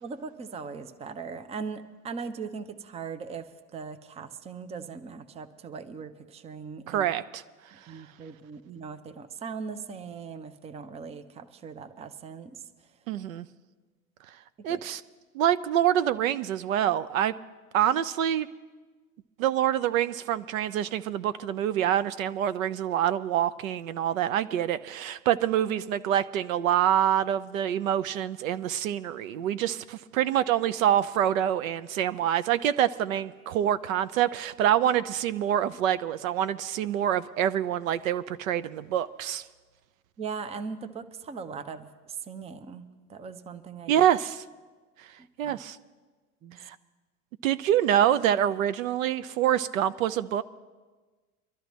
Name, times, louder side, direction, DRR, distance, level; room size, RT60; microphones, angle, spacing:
voice 1, 0.0-7.1 7.9-12.6 14.7-14.8 40.2-44.1 45.4-45.5 46.4-46.6, right 5 dB, 15° right, 12 dB, 0.6 m, -39 dB
voice 2, 6.9-7.4 13.1-13.5 14.6-15.0 15.3-17.3 17.7-18.5 19.4-39.4 43.9-44.4 45.4-45.8 46.6-46.8 47.4-50.4, right 10 dB, 60° right, 14 dB, 0.6 m, -26 dB
23.5 x 12.5 x 3.0 m, 1.3 s
figure-of-eight pair, 90°, 45 cm